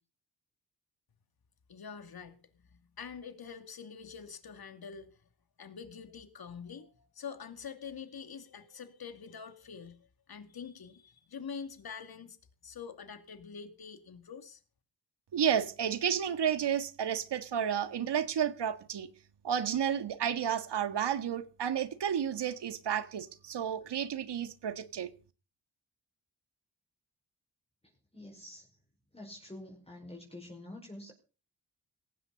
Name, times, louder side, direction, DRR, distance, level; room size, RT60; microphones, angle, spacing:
voice 1, 1.7-5.2 5.6-12.4 12.6-14.6, left 6 dB, 55° left, 2.5 m, -46 dB
voice 2, 15.3-19.1 19.4-25.1, right 8 dB, 70° right, 1.7 m, -31 dB
voice 3, 27.8-28.7 29.1-31.1, left 1 dB, 15° left, 5.2 m, -47 dB
18.0 x 15.5 x 4.0 m
supercardioid pair, 45°, 43 cm